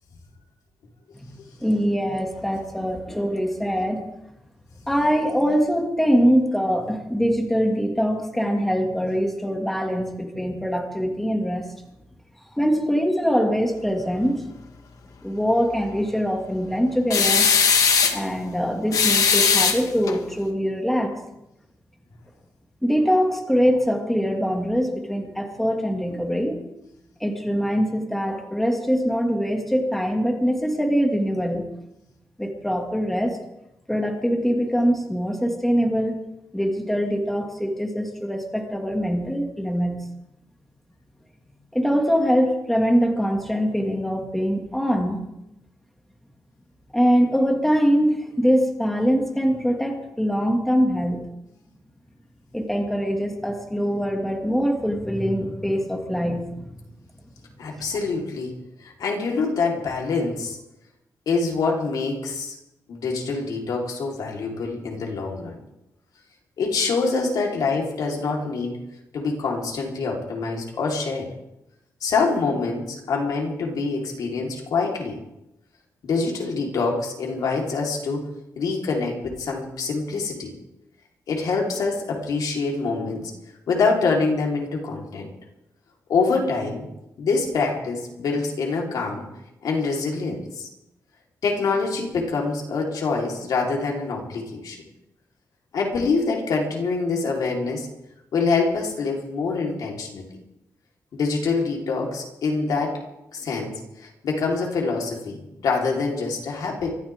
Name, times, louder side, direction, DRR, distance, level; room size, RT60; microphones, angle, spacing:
voice 1, 1.1-4.0 4.9-11.7 12.5-14.5 15.2-17.5 18.1-21.2 22.8-26.6 27.2-31.7 32.4-33.4 33.9-36.2 36.5-40.0 41.7-45.2 46.9-51.3 52.5-56.7, equal, 5° left, 1 dB, 2.2 m, -23 dB
sound 1, 17.1-18.2 18.9-20.2, left 6 dB, 70° left, 1.7 m, -19 dB
voice 2, 57.6-58.6 58.8-60.6 61.3-62.5 62.9-65.6 66.6-68.7 69.1-71.3 72.0-75.2 76.0-78.3 78.6-80.5 81.3-83.3 83.7-85.3 86.1-86.9 87.2-89.2 89.6-90.7 91.4-94.8 95.7-97.9 98.3-100.3 101.1-103.0 103.3-103.8 104.0-107.0, left 4 dB, 85° left, -1 dB, 4.0 m, -25 dB
24.0 x 14.5 x 3.7 m, 0.88 s
wide cardioid pair, 155°, 6 cm